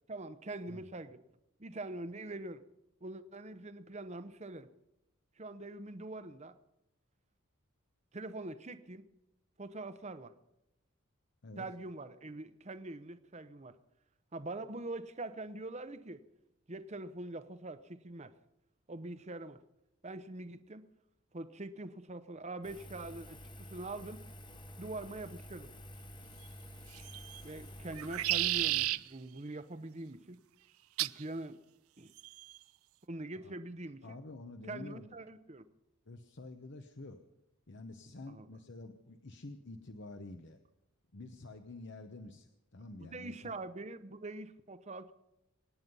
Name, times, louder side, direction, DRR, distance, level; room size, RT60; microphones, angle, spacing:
voice 1, 0.1-1.2 1.6-2.6 3.0-4.7 5.4-6.6 8.1-9.1 9.6-10.3 11.6-13.8 14.3-16.2 16.7-18.3 18.9-19.6 20.0-20.9 21.3-24.2 24.8-25.7 27.4-30.4 31.0-31.6 32.0-32.1 33.1-34.2 34.7-35.7 38.3-38.5 43.0-45.1, right 2 dB, 30° right, 12 dB, 0.8 m, -43 dB
Engine, 22.6-28.9, equal, 20° left, 1.2 m, -50 dB
sound 1, 26.9-27.4 27.9-29.0 31.0-31.2 32.2-32.6, right 16 dB, 75° right, 0.4 m, -32 dB
voice 2, 34.0-35.1 36.1-37.2 37.7-40.6 41.1-43.6, left 2 dB, 55° left, 7 dB, 0.9 m, -48 dB
25.0 x 9.6 x 5.4 m, 0.89 s
head